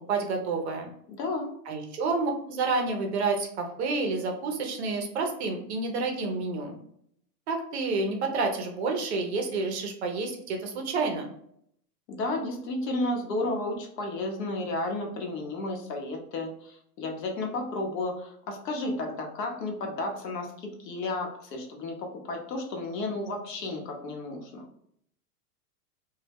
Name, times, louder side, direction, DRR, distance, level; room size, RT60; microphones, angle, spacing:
voice 1, 0.1-0.9 1.7-6.8 7.5-11.3, right 3 dB, 45° right, 3 dB, 0.4 m, -29 dB
voice 2, 1.1-1.5 12.1-24.6, left 2 dB, 80° left, 2 dB, 0.8 m, -32 dB
2.2 x 2.0 x 3.3 m, 0.69 s
supercardioid pair, 150°, 49 cm